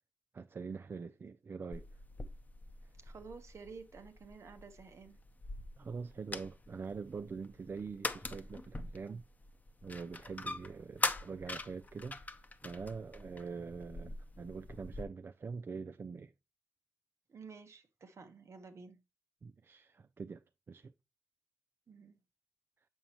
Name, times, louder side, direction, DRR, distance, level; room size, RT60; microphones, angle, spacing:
voice 1, 0.3-1.9 5.8-9.2 9.8-12.4 12.6-16.3 19.4-20.9, right 5 dB, 45° right, 0.4 m, -44 dB
sound 1, 1.7-15.0, left 2 dB, 30° left, 0.7 m, -43 dB
voice 2, 3.0-5.2 17.3-19.0 21.9-22.2, right 5 dB, 65° right, 1.0 m, -52 dB
7.2 x 5.5 x 2.9 m
cardioid pair, 70°, 5 cm